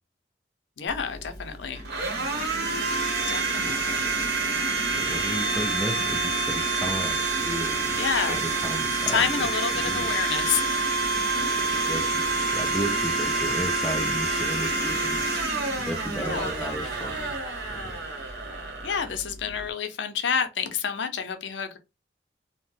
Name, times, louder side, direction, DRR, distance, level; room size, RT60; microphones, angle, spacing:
voice 1, 0.8-1.8 3.3-4.2 8.0-8.4 8.8-10.6 11.1-11.5 16.2-16.7 18.8-21.8, left 6 dB, 85° left, 0.5 m, -29 dB
Domestic sounds home sounds, 0.9-19.7, right 3 dB, 70° right, 1.0 m, -27 dB
voice 2, 4.8-9.5 9.9-10.1 11.5-15.2 15.8-17.3 17.7-18.0, equal, ahead, 0.4 m, -34 dB
2.8 x 2.1 x 3.1 m
head